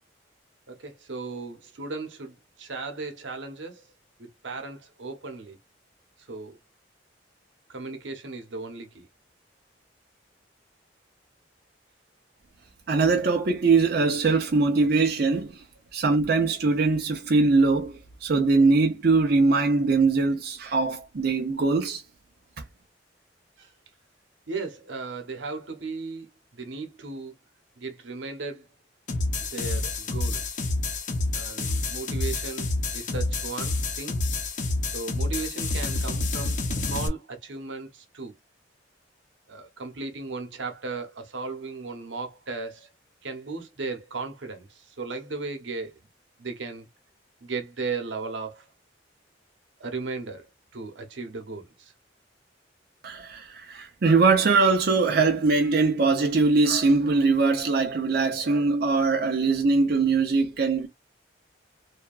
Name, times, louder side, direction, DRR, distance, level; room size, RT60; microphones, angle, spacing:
voice 1, 0.7-3.9 4.2-5.6 6.3-6.6 7.7-9.1 23.6-23.7 24.5-27.3 27.8-28.7 29.5-30.6 31.3-32.7 32.9-34.2 34.9-38.4 39.5-42.9 43.2-46.0 46.4-46.9 47.4-48.7 49.8-50.5 50.7-51.9, right 3 dB, 90° right, 0.8 m, -36 dB
voice 2, 12.9-15.6 15.9-22.0 53.0-60.9, right 3 dB, 55° right, 0.5 m, -22 dB
sound 1, 29.1-37.1, left 2 dB, 40° left, 0.7 m, -28 dB
2.7 x 2.3 x 2.3 m
head